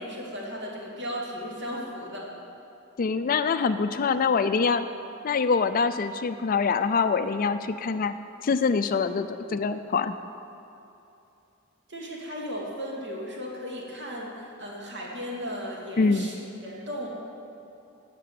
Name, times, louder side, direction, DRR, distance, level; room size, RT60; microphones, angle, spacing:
voice 1, 0.0-2.3 11.9-17.1, equal, 60° right, -3 dB, 3.0 m, -36 dB
voice 2, 3.0-4.9 5.2-8.2 8.4-10.2 16.0-16.3, left 5 dB, 45° left, 11 dB, 0.4 m, -24 dB
14.5 x 6.8 x 9.3 m, 2.8 s
head